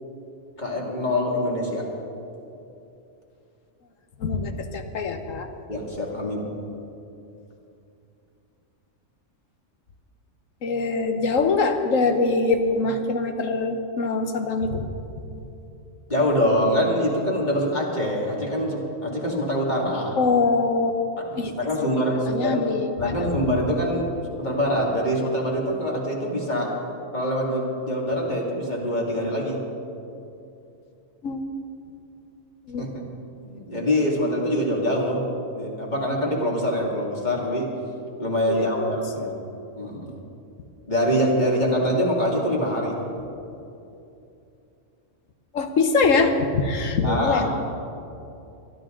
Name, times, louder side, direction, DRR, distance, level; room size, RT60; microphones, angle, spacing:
voice 1, 0.6-1.8 5.7-6.5 16.1-20.1 21.3-22.6 23.0-24.1 24.4-26.7 27.1-29.6 32.8-33.0 33.4-35.3 35.5-37.7 38.2-39.3 39.8-40.1 40.9-43.0 47.0-47.5, equal, 35° left, -3 dB, 2.5 m, -24 dB
voice 2, 4.2-5.5 10.6-14.9 20.2-20.9 21.3-21.5 21.8-21.9 22.3-23.2 31.2-31.5 32.7-32.9 38.5-39.0 45.5-47.5, left 4 dB, 85° left, 6 dB, 1.4 m, -23 dB
22.0 x 12.0 x 3.8 m, 2.8 s
omnidirectional pair, 1.3 m